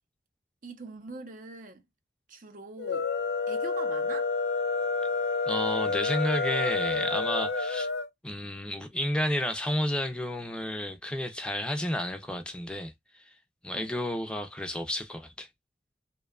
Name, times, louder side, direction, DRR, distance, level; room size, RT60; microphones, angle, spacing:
voice 1, 0.6-1.8 2.3-3.1 3.5-4.3 13.7-14.1, right 3 dB, 50° right, 0.6 m, -43 dB
sound 1, 2.8-8.1, left 4 dB, 85° left, 0.8 m, -29 dB
voice 2, 5.5-7.9 8.2-12.9 13.6-15.5, left 1 dB, 5° left, 0.5 m, -31 dB
2.7 x 2.2 x 2.3 m
head